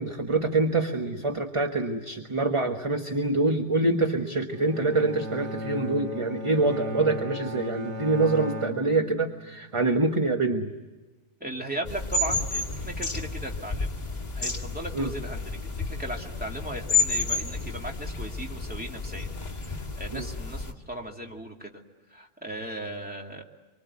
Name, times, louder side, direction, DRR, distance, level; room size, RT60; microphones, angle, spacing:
voice 1, 0.0-10.7 14.9-15.1 20.1-20.3, right 2 dB, 25° right, 4 dB, 1.3 m, -25 dB
Bowed string instrument, 4.5-9.8, left 1 dB, 70° right, 2.4 m, -37 dB
voice 2, 11.4-14.0 14.4-21.8 22.1-23.4, right 1 dB, 5° right, 0 dB, 2.5 m, -37 dB
sound 1, 11.8-20.7, left 3 dB, 35° left, 2.3 m, -31 dB
26.0 x 24.5 x 8.3 m, 1.2 s
omnidirectional pair, 1.2 m